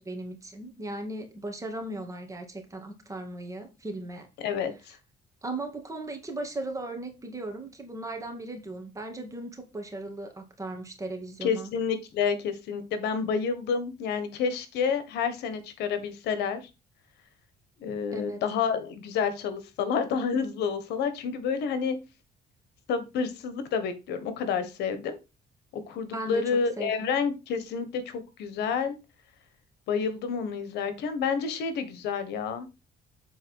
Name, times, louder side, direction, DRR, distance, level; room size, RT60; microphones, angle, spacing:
voice 1, 0.0-4.3 5.4-11.7 18.1-18.4 26.1-27.1, right 2 dB, 20° right, 2.2 m, -37 dB
voice 2, 4.4-5.0 11.4-16.7 17.8-22.0 22.9-25.2 25.9-29.0 29.9-32.7, left 6 dB, 80° left, 1.4 m, -29 dB
7.9 x 4.3 x 4.7 m
cardioid pair, 110°, 17 cm